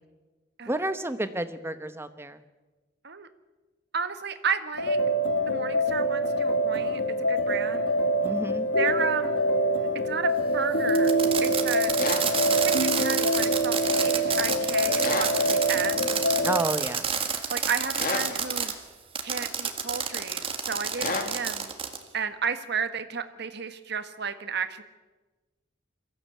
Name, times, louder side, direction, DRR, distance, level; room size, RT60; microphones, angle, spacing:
voice 1, 0.7-2.4 8.2-8.7 16.4-17.1, right 1 dB, 15° right, 10 dB, 1.1 m, -30 dB
voice 2, 3.9-5.0 5.5-7.0 7.3-7.9 8.8-9.4 10.0-11.1 11.4-11.9 12.6-16.1 17.5-18.7 19.2-21.7 22.1-24.8, right 6 dB, 60° right, 9 dB, 1.5 m, -32 dB
sound 1, 4.8-16.7, right 1 dB, 75° left, 2.3 m, -25 dB
Fireworks, 10.9-18.7 19.2-22.0, right 6 dB, 30° right, 1.8 m, -29 dB
sound 2, 12.0-12.3 15.0-15.4 18.0-18.3 21.0-21.3, left 3 dB, 50° left, 2.4 m, -29 dB
22.5 x 15.0 x 8.5 m, 1.2 s
head